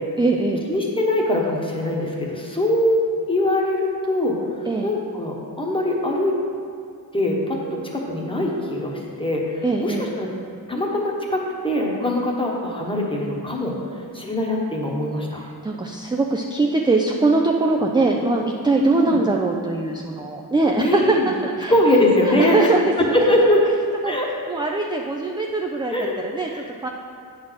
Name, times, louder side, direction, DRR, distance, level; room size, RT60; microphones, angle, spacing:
voice 1, 0.2-0.7 4.7-4.9 9.6-10.1 15.6-21.7 22.3-23.2 24.0-24.2 24.5-26.9, right 3 dB, 15° right, 1 dB, 0.3 m, -22 dB
voice 2, 0.7-4.4 4.8-6.4 7.1-10.3 10.7-13.7 14.1-15.4 18.8-19.2 20.8-21.3 21.7-22.7 23.0-23.6 24.0-24.3 25.9-26.2 26.5-26.9, left 1 dB, 15° left, -2 dB, 1.1 m, -22 dB
8.8 x 4.1 x 6.2 m, 2.4 s
wide cardioid pair, 135°, 36 cm